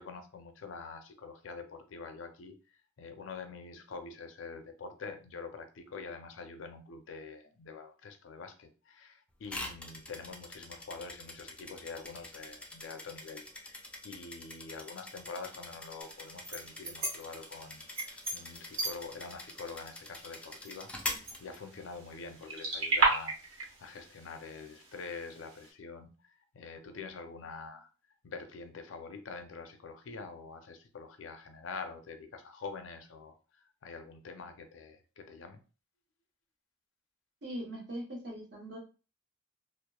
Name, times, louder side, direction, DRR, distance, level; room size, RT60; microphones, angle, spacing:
voice 1, 0.0-2.6 3.0-27.9 28.2-35.6, left 4 dB, 75° left, 7 dB, 0.4 m, -45 dB
sound 1, 9.5-22.1, left 2 dB, 5° left, 0.3 m, -45 dB
sound 2, 16.0-25.7, right 3 dB, 85° right, 1.0 m, -37 dB
voice 2, 37.4-38.8, equal, 60° right, -1 dB, 1.0 m, -40 dB
2.8 x 2.0 x 2.2 m, 0.34 s
head